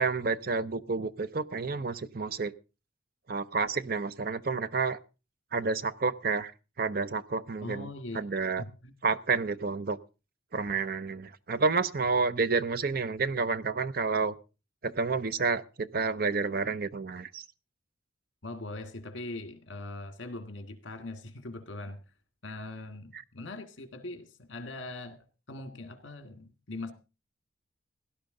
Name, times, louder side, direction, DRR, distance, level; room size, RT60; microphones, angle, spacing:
voice 1, 0.0-2.5 3.3-5.0 5.5-6.5 6.8-7.9 8.1-8.6 9.0-10.0 10.5-14.3 14.8-17.4, right 4 dB, 50° right, 0.6 m, -29 dB
voice 2, 7.6-8.2 8.6-8.9 18.4-22.0 22.4-26.9, left 2 dB, 70° left, 1.8 m, -41 dB
17.0 x 11.5 x 3.8 m
head